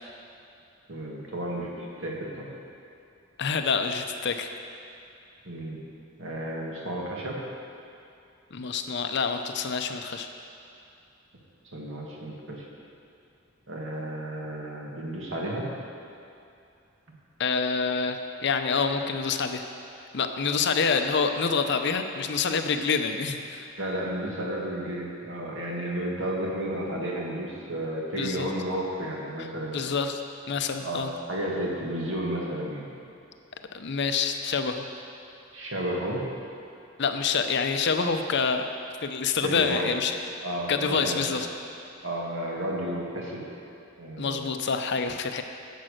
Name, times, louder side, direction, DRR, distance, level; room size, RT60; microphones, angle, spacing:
voice 1, 0.9-2.5 5.5-5.8 6.2-7.4 11.6-12.7 13.7-15.7 23.8-29.8 30.8-31.0 31.3-32.9 35.5-36.2 39.4-39.9 40.4-41.2 42.0-43.4 44.0-44.5, right 1 dB, 70° right, -2 dB, 1.9 m, -32 dB
voice 2, 3.4-4.5 8.5-10.3 17.4-19.6 20.1-23.7 28.1-28.5 29.7-30.2 30.5-31.1 33.7-34.8 37.0-38.7 39.0-40.2 40.7-41.5 44.2-45.4, left 5 dB, 55° left, 7 dB, 0.6 m, -27 dB
10.5 x 7.5 x 6.6 m, 2.7 s
head